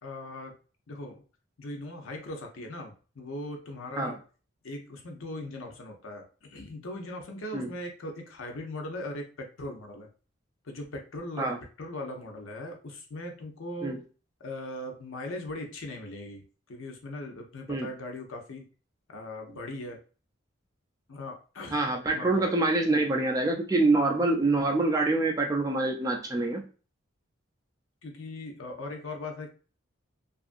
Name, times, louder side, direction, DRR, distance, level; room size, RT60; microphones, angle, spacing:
voice 1, 0.0-0.5 0.9-1.2 1.6-4.2 4.6-10.1 10.6-11.5 11.8-14.0 14.4-16.4 16.7-18.7 19.1-20.0 21.1-21.8 22.1-22.5 28.0-29.5, left 1 dB, 75° left, 3 dB, 0.7 m, -39 dB
voice 2, 21.7-26.7, right 2 dB, 15° right, 2 dB, 0.3 m, -26 dB
2.7 x 2.4 x 2.5 m, 0.36 s
head